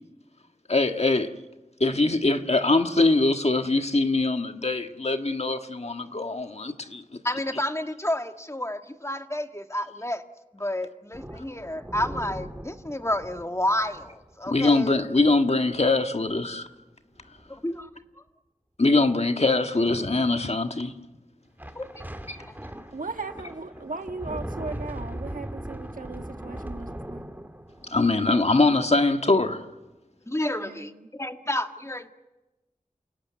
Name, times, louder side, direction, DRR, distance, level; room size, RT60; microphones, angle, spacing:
voice 1, 0.7-1.3 1.8-7.2 14.5-16.7 18.8-20.9 22.3-22.4 27.9-29.6, left 3 dB, 50° left, 7 dB, 1.6 m, -23 dB
voice 2, 7.2-10.2 10.5-15.0 17.5-17.9 18.2-18.3 21.8-21.9 22.4-22.6 30.3-32.1, left 1 dB, 20° left, 6 dB, 1.8 m, -30 dB
sound 1, 11.1-15.4 15.7-15.9 16.3-16.5 17.2-17.6 21.6-29.6, right 1 dB, 15° right, 1.8 m, -40 dB
voice 3, 22.9-27.2 30.6-31.1, right 3 dB, 80° right, 6 dB, 1.6 m, -37 dB
29.0 x 17.0 x 9.5 m, 1.1 s
wide cardioid pair, 45°, 14 cm